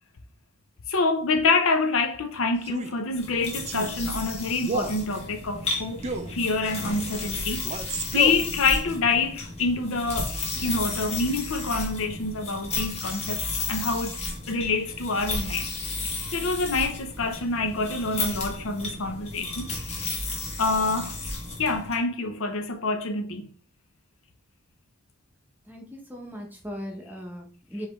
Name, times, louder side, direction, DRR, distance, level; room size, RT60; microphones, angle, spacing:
voice 1, 0.9-6.0 6.3-7.9 8.1-14.2 14.5-15.7 16.1-19.7 20.6-21.2 21.6-23.5 27.7-27.8, left 3 dB, 70° left, 0.7 m, -26 dB
Male speech man speaking, 2.6-3.0 3.7-3.9 4.6-5.0 6.0-6.4 7.6-8.5, right 3 dB, 30° right, 0.4 m, -31 dB
sound 1, 3.1-22.0, left 3 dB, 30° left, 1.1 m, -33 dB
voice 2, 25.7-27.9, equal, 10° right, 0.8 m, -38 dB
4.9 x 3.3 x 3.2 m
head